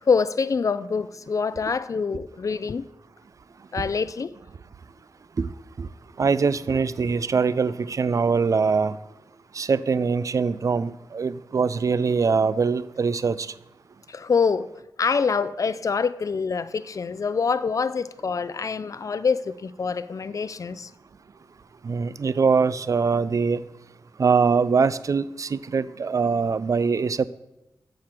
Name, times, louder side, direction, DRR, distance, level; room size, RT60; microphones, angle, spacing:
voice 1, 0.0-2.9 3.7-4.3 14.1-14.7 15.0-20.9, left 5 dB, 50° left, 0.4 m, -25 dB
voice 2, 6.2-9.0 9.5-13.5 21.8-23.6 24.2-27.3, right 5 dB, 50° right, 0.3 m, -23 dB
7.1 x 5.0 x 5.9 m
cardioid pair, 65°, 7 cm